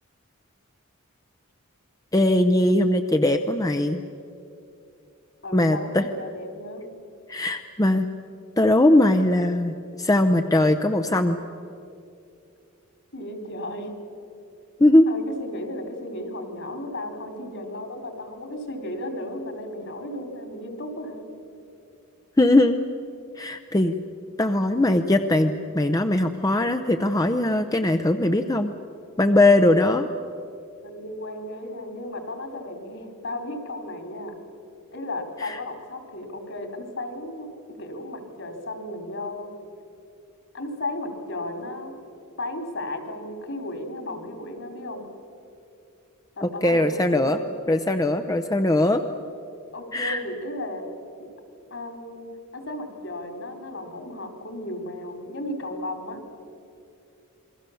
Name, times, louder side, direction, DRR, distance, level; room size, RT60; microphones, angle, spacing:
voice 1, 2.1-4.0 5.5-6.0 7.3-8.1 8.6-11.4 14.8-15.1 22.4-22.8 23.4-23.9 24.4-28.7 29.2-30.1 35.4-35.6 46.4-47.4 47.7-49.0 49.9-50.2, left 1 dB, 15° left, 7 dB, 0.7 m, -20 dB
voice 2, 5.4-6.9 13.1-13.9 15.1-21.3 30.8-34.4 34.9-39.5 40.5-41.9 42.4-45.1 46.4-47.5 49.7-50.9 51.2-51.3 51.7-56.3, left 1 dB, 60° left, 5 dB, 3.4 m, -34 dB
28.0 x 22.0 x 7.0 m, 2.6 s
head